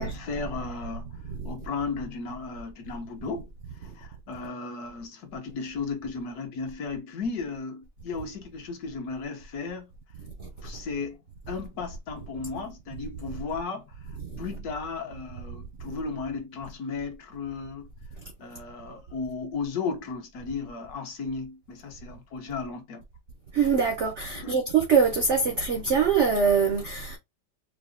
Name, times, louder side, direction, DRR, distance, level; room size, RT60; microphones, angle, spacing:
voice 1, 0.0-9.9 10.6-17.9 18.4-23.0 24.3-24.5, left 4 dB, 65° left, 1.1 m, -35 dB
voice 2, 23.5-27.2, right 6 dB, 85° right, 0.6 m, -24 dB
4.8 x 2.0 x 2.5 m
omnidirectional pair, 2.0 m